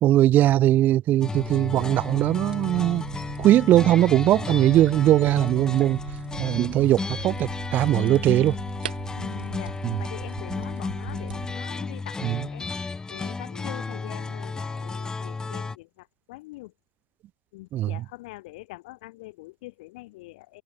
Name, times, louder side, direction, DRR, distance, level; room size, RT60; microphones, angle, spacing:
voice 1, 0.0-3.0 3.4-6.0 6.4-8.6 9.8-10.0 12.2-12.4 17.7-17.9, right 13 dB, 35° right, 0.3 m, -20 dB
sound 1, 1.2-15.8, left 4 dB, 15° left, 0.8 m, -33 dB
sound 2, 1.3-11.5, right 9 dB, 70° right, 2.6 m, -41 dB
voice 2, 9.2-9.7 10.0-12.7 13.1-16.7 17.5-20.6, left 21 dB, 55° left, 2.0 m, -43 dB
figure-of-eight pair, 80°, 5 cm